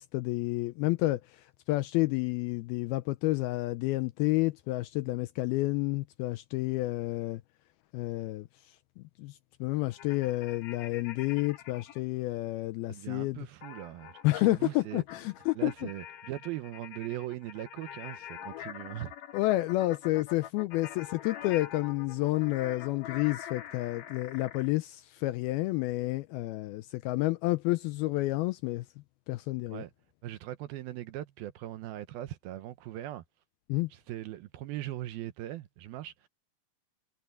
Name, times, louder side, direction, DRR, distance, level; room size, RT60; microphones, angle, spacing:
voice 1, 0.0-7.4 7.9-13.5 14.2-15.7 19.3-28.9 29.3-29.8 33.7-33.9, left 19 dB, 80° left, 2.2 m, -30 dB
sound 1, 9.9-12.0 13.6-24.7, left 10 dB, 65° left, 2.7 m, -45 dB
voice 2, 12.9-15.0 15.5-19.1 29.7-29.9 30.2-33.2 33.9-36.3, right 14 dB, 75° right, 2.4 m, -40 dB
omnidirectional pair, 4.8 m